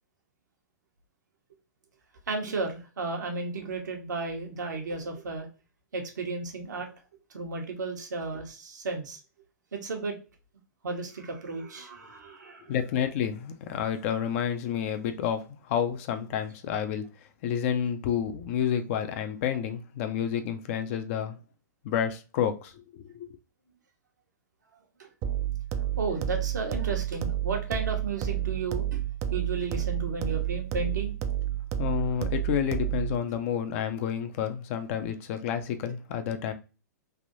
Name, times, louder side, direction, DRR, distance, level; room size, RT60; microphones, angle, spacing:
voice 1, 2.3-5.5 5.9-6.9 7.3-9.2 9.7-10.2 10.8-12.7 25.0-25.1 26.0-29.0 29.3-31.1, right 3 dB, 75° right, 1.0 m, -33 dB
voice 2, 12.7-17.1 17.4-21.4 21.8-23.3 31.8-36.5, left 8 dB, 45° left, 0.5 m, -30 dB
sound 1, 25.2-33.2, right 11 dB, 30° right, 0.4 m, -30 dB
3.4 x 2.6 x 2.6 m
hypercardioid pair, 110°, 10 cm